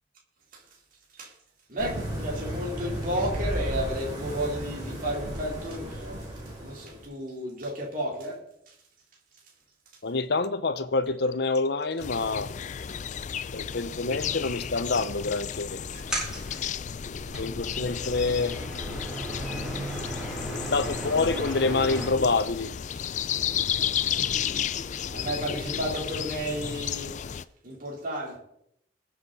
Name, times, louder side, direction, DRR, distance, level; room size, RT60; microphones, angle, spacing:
voice 1, 1.7-6.2 6.6-8.7 23.8-24.1 24.6-27.2 27.6-28.4, equal, 50° right, 3.8 m, -33 dB
sound 1, 1.8-7.0, right 1 dB, 25° right, 5.0 m, -34 dB
voice 2, 10.0-12.5 13.5-15.8 17.3-18.6 20.5-22.7, left 3 dB, 65° left, 0.8 m, -27 dB
sound 2, 12.0-27.4, left 8 dB, 40° left, 0.4 m, -33 dB
sound 3, 15.9-22.1, equal, 5° right, 6.7 m, -35 dB
21.5 x 7.8 x 4.1 m
head